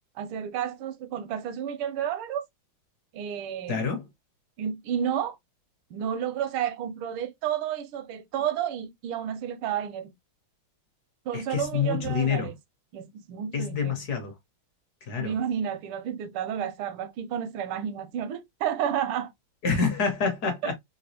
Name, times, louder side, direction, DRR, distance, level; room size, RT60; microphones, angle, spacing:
voice 1, 0.2-2.5 3.1-3.9 4.6-5.4 5.9-10.1 11.2-12.6 12.9-14.0 15.2-19.3 20.6-20.7, right 9 dB, 85° right, 1.4 m, -31 dB
voice 2, 3.7-4.1 11.3-12.5 13.5-14.3 15.1-15.3 19.6-20.7, left 6 dB, 60° left, 1.1 m, -27 dB
4.0 x 2.2 x 2.7 m
omnidirectional pair, 2.3 m